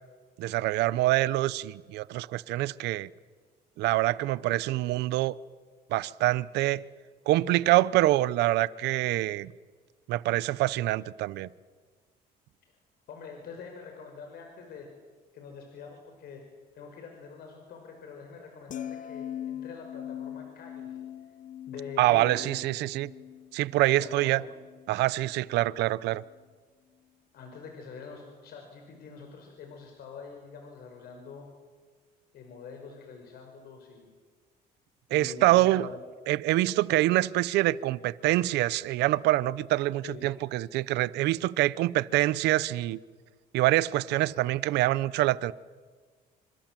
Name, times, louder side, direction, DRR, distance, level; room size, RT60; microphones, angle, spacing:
voice 1, 0.4-3.1 3.8-5.3 5.9-6.8 7.3-9.5 10.1-11.5 22.0-23.1 23.5-24.4 24.9-26.2 35.1-35.9 36.3-43.0 43.5-45.5, right 16 dB, 85° right, 0.8 m, -25 dB
voice 2, 13.1-14.9 15.3-16.4 16.7-21.0 21.7-22.5 23.9-24.5 27.3-31.5 32.3-34.1 35.1-36.0 40.0-40.3, left 5 dB, 65° left, 5.5 m, -45 dB
sound 1, 18.7-25.0 25.3-25.6, left 10 dB, 50° left, 1.0 m, -42 dB
27.5 x 26.5 x 7.6 m
cardioid pair, 110°, 17 cm